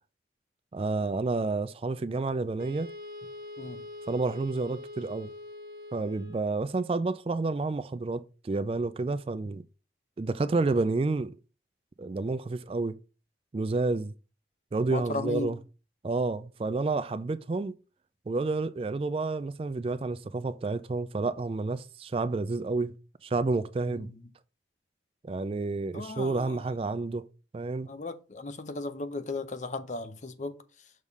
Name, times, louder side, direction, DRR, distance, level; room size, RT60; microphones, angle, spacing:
voice 1, 0.7-2.9 4.1-5.3 5.9-9.6 10.2-11.3 12.0-13.0 13.5-14.1 14.7-15.6 16.0-17.8 18.3-22.9 23.2-24.1 25.2-27.3 27.5-27.9, right 3 dB, 30° right, 0.3 m, -30 dB
Wind instrument woodwind instrument, 2.6-6.6, left 2 dB, 60° right, 1.1 m, -43 dB
voice 2, 14.9-15.6 23.9-24.3 25.9-26.6 27.9-30.6, left 2 dB, 40° left, 0.6 m, -36 dB
6.4 x 3.6 x 5.3 m
head